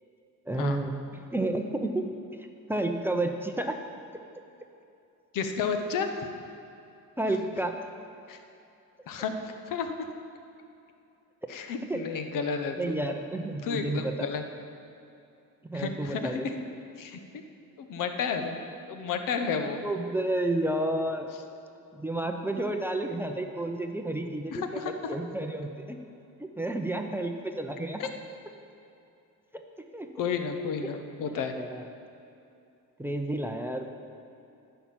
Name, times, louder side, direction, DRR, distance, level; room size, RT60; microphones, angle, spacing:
voice 1, 0.5-2.0 2.4-3.8 7.2-7.8 11.9-12.1 12.8-14.3 15.6-16.5 19.8-21.3 21.9-26.0 26.4-28.1 29.5-29.6 29.9-30.1 31.3-31.9 33.0-33.9, right 1 dB, 5° right, 4 dB, 0.6 m, -31 dB
voice 2, 5.3-6.3 8.3-8.4 9.1-9.3 9.7-10.0 11.5-13.0 13.6-14.4 15.7-16.5 17.0-17.2 17.8-18.6 18.8-19.8 24.5-24.9 28.0-28.1 30.2-31.5, left 6 dB, 70° left, 6 dB, 1.1 m, -31 dB
11.5 x 5.8 x 8.6 m, 2.7 s
cardioid pair, 125°, 34 cm